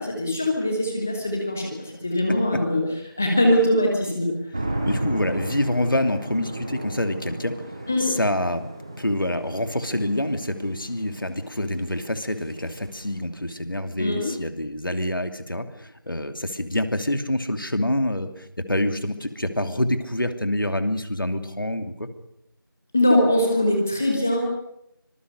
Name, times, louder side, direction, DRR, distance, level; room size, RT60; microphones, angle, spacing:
voice 1, 0.0-2.8 3.2-4.3 7.9-8.1 14.0-14.3 22.9-24.4, left 1 dB, 5° left, 1 dB, 1.1 m, -22 dB
sound 1, 4.5-13.2, right 1 dB, 10° right, 1.3 m, -34 dB
voice 2, 4.8-7.6 8.0-8.7 9.0-22.1, left 1 dB, 70° left, 8 dB, 2.9 m, -26 dB
25.0 x 20.5 x 6.7 m, 0.78 s
figure-of-eight pair, 175°, 12 cm